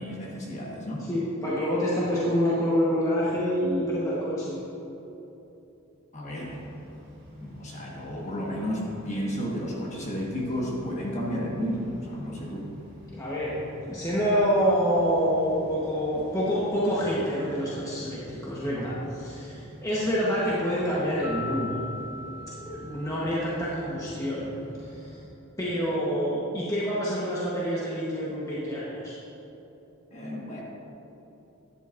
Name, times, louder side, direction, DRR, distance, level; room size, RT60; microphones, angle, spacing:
voice 1, 0.0-1.1 6.1-6.6 7.4-12.7 30.1-30.6, equal, 35° left, -3 dB, 1.4 m, -32 dB
voice 2, 1.0-4.6 13.1-13.6 13.8-21.7 22.6-24.5 24.9-25.2 25.6-29.2, equal, 15° left, -8 dB, 1.1 m, -27 dB
sound 1, 6.4-25.1, equal, 40° right, 2.1 m, -47 dB
sound 2, 21.2-24.0, left 3 dB, 10° right, 0.9 m, -39 dB
10.5 x 10.5 x 2.5 m, 3.0 s
head